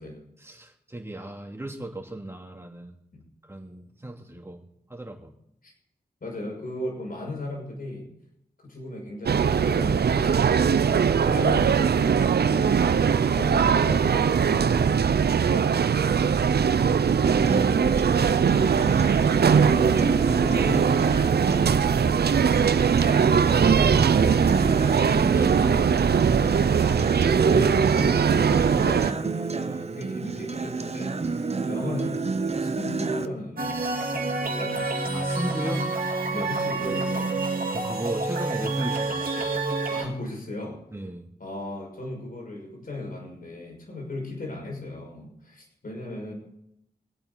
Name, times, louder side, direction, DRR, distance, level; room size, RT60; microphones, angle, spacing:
voice 1, 0.4-3.0 3.4-4.6 4.9-5.3 10.7-11.5 23.1-24.5 25.1-26.6 35.1-35.8 37.7-39.5 40.9-41.2, right 1 dB, 15° right, 0 dB, 2.8 m, -36 dB
voice 2, 6.2-8.1 8.6-10.8 11.3-15.0 15.5-16.6 17.2-18.4 19.5-22.3 27.3-35.0 35.7-35.8 36.3-37.3 39.9-40.8 41.4-46.3, left 1 dB, 60° left, 0 dB, 6.2 m, -37 dB
sound 1, 9.3-29.1, right 7 dB, 75° right, 0.6 m, -21 dB
Acoustic guitar, 17.2-33.3, right 4 dB, 40° right, 0.9 m, -29 dB
sound 2, 33.6-40.0, right 3 dB, 60° right, 2.4 m, -28 dB
25.5 x 8.6 x 4.0 m, 0.78 s
wide cardioid pair, 80°, 17 cm